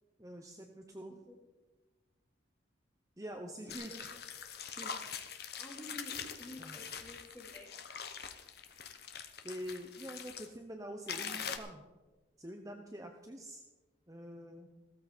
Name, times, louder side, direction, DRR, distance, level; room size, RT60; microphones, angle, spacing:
voice 1, 0.2-1.1 3.2-4.1 4.8-5.1 6.6-6.8 9.4-11.9 12.4-13.6 14.1-14.7, equal, 20° right, 3 dB, 0.9 m, -46 dB
sound 1, 3.7-10.5 11.1-11.6, left 7 dB, 55° left, 1.2 m, -43 dB
voice 2, 5.6-7.7, left 1 dB, 15° left, -3 dB, 3.6 m, -50 dB
16.0 x 13.5 x 4.4 m, 1.2 s
head